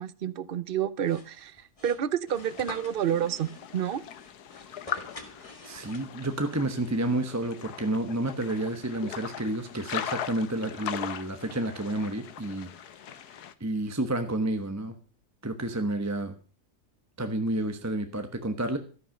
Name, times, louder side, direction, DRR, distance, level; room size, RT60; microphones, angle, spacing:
voice 1, 0.0-1.6 1.8-4.0, right 9 dB, 50° right, 18 dB, 0.7 m, -29 dB
sound 1, 1.0-6.4, left 3 dB, 20° left, 1.7 m, -47 dB
sound 2, 2.3-13.5, left 9 dB, 75° left, 1.4 m, -40 dB
voice 2, 5.6-12.7 13.6-14.9 15.4-16.3 17.2-18.8, right 1 dB, 10° right, 7 dB, 1.0 m, -30 dB
13.5 x 9.8 x 6.5 m, 0.39 s
omnidirectional pair, 1.7 m